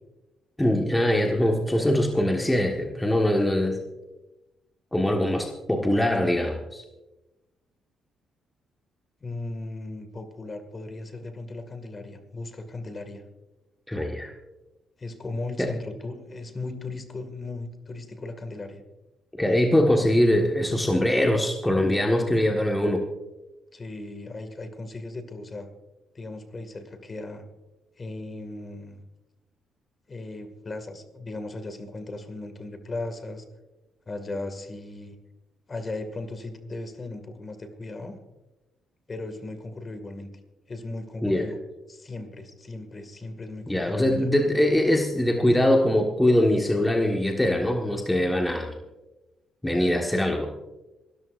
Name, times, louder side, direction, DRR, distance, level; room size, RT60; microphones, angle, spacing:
voice 1, 0.6-3.8 4.9-6.8 13.9-14.3 15.6-15.7 19.4-23.0 41.2-41.5 43.7-48.8 49.6-50.5, left 1 dB, 10° left, 1 dB, 1.5 m, -22 dB
voice 2, 9.2-13.2 15.0-18.8 23.7-25.7 26.1-27.4 28.0-29.0 30.1-33.4 34.1-35.2 35.7-38.2 39.1-40.3 40.7-41.6 41.9-44.3, left 2 dB, 35° left, 8 dB, 2.1 m, -37 dB
26.5 x 13.5 x 2.6 m, 1.0 s
cardioid pair, 90°, 0 cm